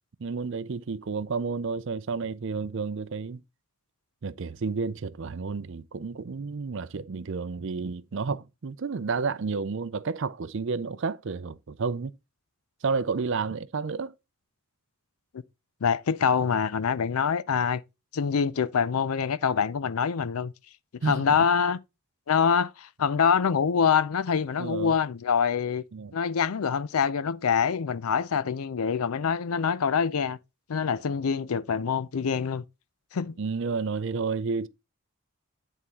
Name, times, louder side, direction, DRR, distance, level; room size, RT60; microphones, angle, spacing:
voice 1, 0.2-3.4 4.2-12.2 12.8-14.1 21.0-21.4 24.6-24.9 25.9-26.1 33.4-34.7, right 4 dB, 60° right, 0.5 m, -31 dB
voice 2, 15.8-17.8 18.1-20.5 21.0-21.8 22.3-25.8 26.1-30.4 30.7-32.6 33.1-33.4, left 6 dB, 80° left, 0.5 m, -25 dB
9.4 x 3.6 x 4.1 m
head